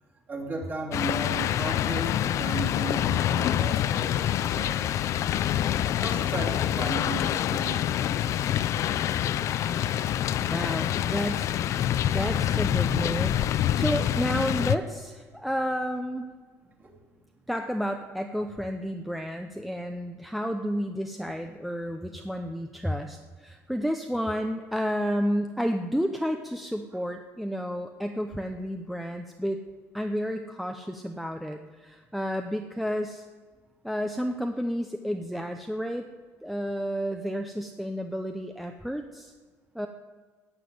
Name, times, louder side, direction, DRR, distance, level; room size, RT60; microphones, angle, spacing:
voice 1, 0.3-5.1 5.9-8.0 15.3-15.4 16.8-17.0, right 3 dB, 30° right, -1 dB, 2.9 m, -36 dB
sound 1, 0.9-14.8, left 11 dB, 55° left, 0.5 m, -26 dB
voice 2, 10.5-11.5 12.1-13.4 13.7-16.3 17.5-29.6 29.9-33.2 33.8-36.1 36.4-39.3 39.7-39.9, equal, ahead, 5 dB, 0.6 m, -31 dB
15.0 x 7.3 x 9.4 m, 1.4 s
cardioid pair, 140°, 6 cm